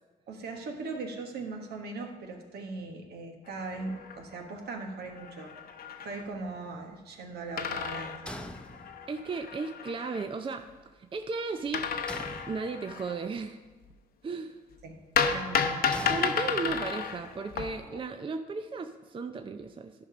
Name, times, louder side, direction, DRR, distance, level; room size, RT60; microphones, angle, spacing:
voice 1, 0.3-5.6 6.0-8.4 14.8-15.9, right 3 dB, 70° right, 3 dB, 1.3 m, -39 dB
sound 1, 3.5-4.4 4.8-4.9 5.1-6.2 7.6-10.2 11.7-13.3 15.1-18.0, left 6 dB, 60° left, 0.7 m, -32 dB
sound 2, 8.3-9.3 12.1-13.1 15.9-17.0, left 1 dB, 5° left, 0.7 m, -43 dB
voice 2, 9.1-10.7 11.0-11.9 12.4-13.6 14.2-14.5 16.1-19.9, right 4 dB, 30° right, 7 dB, 0.5 m, -35 dB
11.0 x 5.3 x 4.9 m, 1.3 s
supercardioid pair, 60°, 18 cm